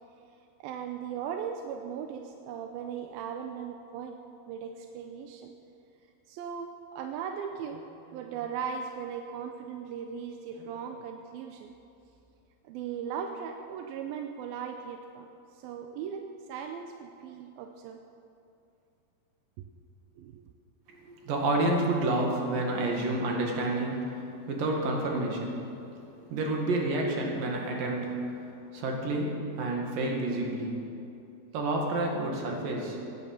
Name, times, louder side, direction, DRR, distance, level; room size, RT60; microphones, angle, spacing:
voice 1, 0.6-5.5 6.3-11.7 12.6-18.0 19.6-19.7 20.2-20.4, right 7 dB, 80° right, 5 dB, 2.4 m, -38 dB
voice 2, 21.0-25.7 26.3-28.2 28.7-30.8 31.5-33.0, right 2 dB, 60° right, 0 dB, 3.6 m, -29 dB
17.0 x 11.0 x 7.3 m, 2.6 s
omnidirectional pair, 4.6 m